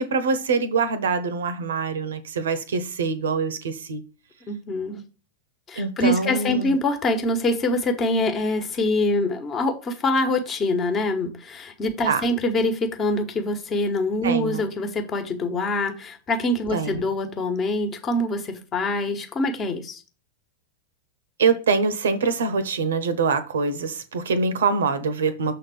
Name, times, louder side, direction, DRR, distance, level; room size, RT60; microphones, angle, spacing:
voice 1, 0.0-4.0 5.8-6.7 12.1-12.2 14.2-14.6 16.7-17.0 21.4-25.6, right 4 dB, 65° right, 0.8 m, -24 dB
voice 2, 4.5-5.0 5.7-20.0, left 2 dB, 25° left, 1.3 m, -24 dB
6.8 x 3.8 x 5.5 m
figure-of-eight pair, 90°, 0 cm